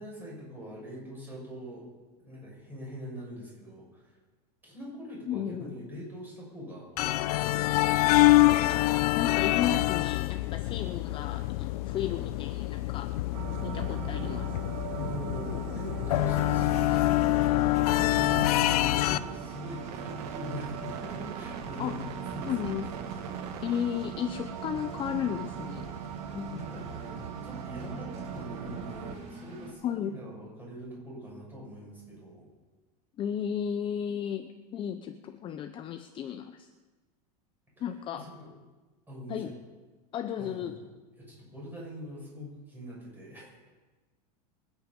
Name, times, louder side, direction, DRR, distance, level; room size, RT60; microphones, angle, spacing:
voice 1, 0.0-1.8 2.2-4.2 4.6-7.8 14.9-22.8 26.5-32.5 38.1-38.5 39.1-39.5 40.4-40.7 41.2-43.6, equal, 10° right, -4 dB, 6.3 m, -43 dB
voice 2, 5.3-5.8 8.7-13.1 13.6-14.6 21.8-22.0 22.4-22.9 23.6-25.9 26.3-26.6 29.8-30.1 33.2-36.7 37.8-38.2 39.3-39.5 40.1-40.8, left 9 dB, 25° left, 8 dB, 0.6 m, -34 dB
sound 1, 7.0-19.2, left 18 dB, 70° left, 0.6 m, -26 dB
sound 2, 13.3-29.2, right 8 dB, 75° right, 1.4 m, -39 dB
Engine, 16.1-29.7, right 2 dB, 30° right, 2.4 m, -47 dB
25.0 x 9.2 x 5.3 m, 1.3 s
supercardioid pair, 150°, 20 cm